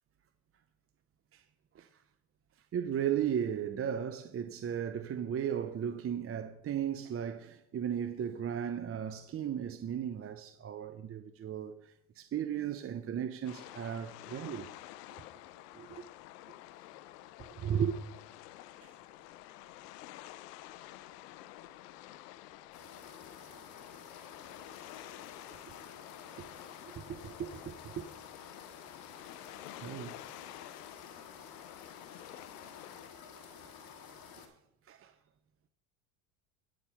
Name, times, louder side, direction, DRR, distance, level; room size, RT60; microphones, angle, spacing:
voice 1, 2.7-14.7 15.7-16.0 17.6-18.0 18.8-18.9 23.5-23.6 26.4-26.5 27.1-28.1 29.8-30.2 34.9-35.1, right 9 dB, 30° right, 0.7 m, -36 dB
sound 1, 13.4-33.1, left 15 dB, 85° left, 0.7 m, -50 dB
sound 2, 22.7-34.5, left 6 dB, 50° left, 2.3 m, -52 dB
9.8 x 6.8 x 5.7 m
supercardioid pair, 90°, 46 cm